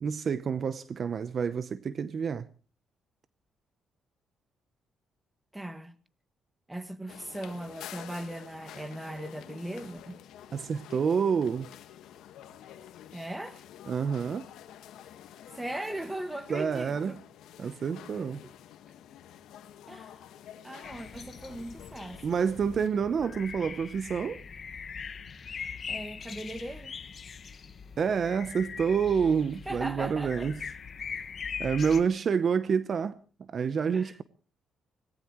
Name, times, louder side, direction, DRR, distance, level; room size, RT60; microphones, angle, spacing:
voice 1, 0.0-2.5 10.5-11.7 13.9-14.5 16.5-17.2 17.6-18.4 22.2-24.4 28.0-30.6 31.6-34.2, right 6 dB, 50° right, 0.8 m, -28 dB
voice 2, 5.5-6.0 6.7-10.2 13.1-13.6 15.5-17.2 17.6-17.7 18.3-18.5 19.9-20.2 20.6-22.4 25.9-26.9 29.7-30.5 33.9-34.1, right 1 dB, 10° right, 1.7 m, -39 dB
sound 1, 7.1-22.9, left 11 dB, 85° left, 1.6 m, -49 dB
sound 2, 20.8-32.0, left 6 dB, 45° left, 1.4 m, -41 dB
25.0 x 18.5 x 3.1 m
cardioid pair, 90°, 0 cm